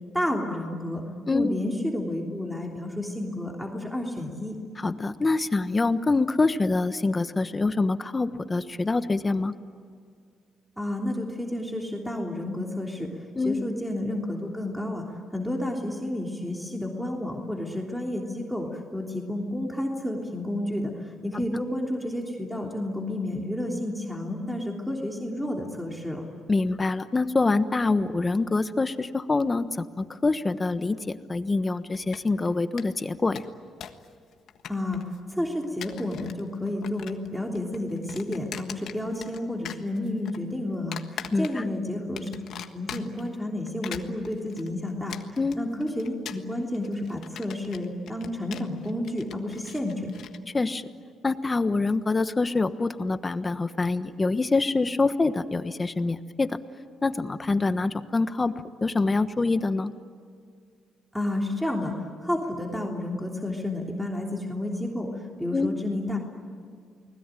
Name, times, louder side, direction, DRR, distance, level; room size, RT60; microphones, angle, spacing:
voice 1, 0.1-1.0 1.3-4.5 10.8-26.2 34.7-35.0 35.3-42.4 42.7-50.1 61.1-66.2, left 1 dB, ahead, 0 dB, 3.2 m, -31 dB
voice 2, 4.8-9.5 13.3-13.6 21.5-21.6 26.5-33.4 41.3-41.6 45.4-45.6 50.5-50.9 51.2-56.6 57.0-58.5 58.8-59.9 65.5-65.7, left 3 dB, 25° left, 11 dB, 1.3 m, -25 dB
sound 1, 31.9-32.5 32.8-32.9 33.1-34.1 34.3-35.2 35.6-36.4 36.7-37.3 37.5-39.4 39.6-40.4 40.9-41.8 42.2-43.3 43.7-50.4, left 9 dB, 70° left, 1.5 m, -41 dB
29.5 x 20.5 x 9.2 m, 2.1 s
cardioid pair, 90°, 0 cm